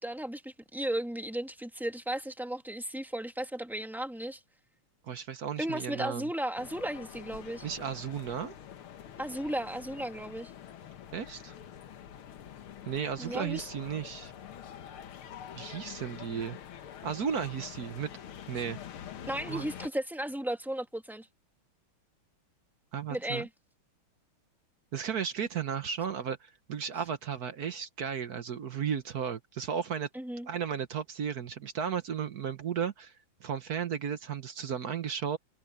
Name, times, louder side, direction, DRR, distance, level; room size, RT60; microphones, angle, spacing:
voice 1, 0.0-4.4 5.6-7.7 9.2-10.5 13.2-13.7 19.3-21.3 23.1-23.5 30.1-30.5, right 1 dB, ahead, 1.2 m, -35 dB
voice 2, 5.0-6.3 7.6-8.5 11.1-11.5 12.9-14.3 15.5-16.6 17.0-18.1 18.5-18.8 19.5-19.7 22.9-23.4 24.9-30.1 30.5-33.1 33.4-35.4, right 7 dB, 55° right, 1.3 m, -34 dB
sound 1, 6.6-19.9, left 9 dB, 80° left, 2.1 m, -46 dB
omnidirectional pair, 2.3 m